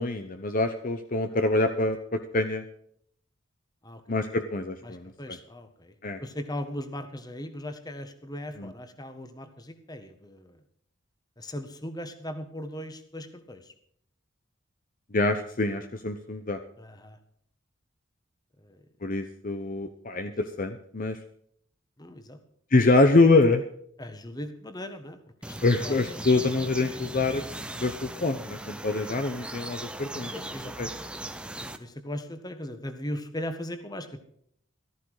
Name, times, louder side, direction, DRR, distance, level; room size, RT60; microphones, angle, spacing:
voice 1, 0.0-2.6 4.1-5.1 6.0-6.2 8.6-8.7 15.1-16.6 19.0-21.2 22.7-23.6 25.6-27.4 27.7-30.3 30.8-30.9, left 2 dB, 40° left, 7 dB, 0.9 m, -25 dB
voice 2, 4.8-5.9 6.2-10.6 11.4-13.7 16.8-17.2 18.6-18.8 22.0-22.4 24.0-25.2 25.4-25.5 25.8-25.9 27.9-28.2 30.3-30.7 31.3-34.2, left 1 dB, 20° left, 8 dB, 1.5 m, -38 dB
sound 1, 25.4-31.8, right 1 dB, 5° right, 0.8 m, -38 dB
14.0 x 14.0 x 4.8 m, 0.66 s
head